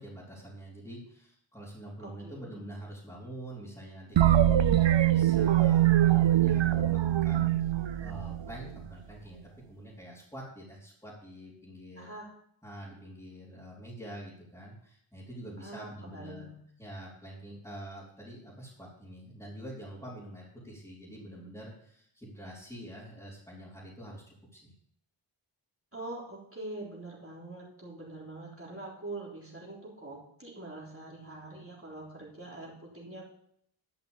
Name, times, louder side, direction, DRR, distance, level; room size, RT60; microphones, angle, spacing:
voice 1, 0.0-12.1 12.6-16.4 16.8-24.2 24.5-24.7, right 1 dB, 5° left, -8 dB, 4.4 m, -46 dB
voice 2, 2.0-2.6 11.9-12.3 15.6-16.6 25.9-33.2, right 2 dB, 25° right, -4 dB, 3.6 m, -44 dB
sound 1, 4.2-8.8, right 12 dB, 60° right, 0.6 m, -23 dB
11.5 x 5.9 x 7.2 m, 0.67 s
wide cardioid pair, 55°, 49 cm